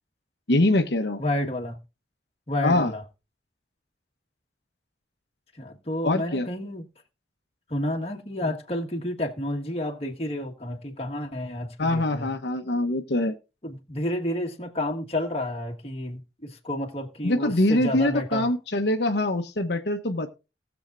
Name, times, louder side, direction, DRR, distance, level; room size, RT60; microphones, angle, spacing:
voice 1, 0.5-1.2 2.6-2.9 6.0-6.5 11.8-13.3 17.2-20.3, left 1 dB, 70° left, 0.9 m, -24 dB
voice 2, 1.2-1.8 2.5-3.0 5.6-6.8 7.7-12.3 13.6-18.5, left 1 dB, 35° left, 1.6 m, -30 dB
18.5 x 7.1 x 2.6 m
head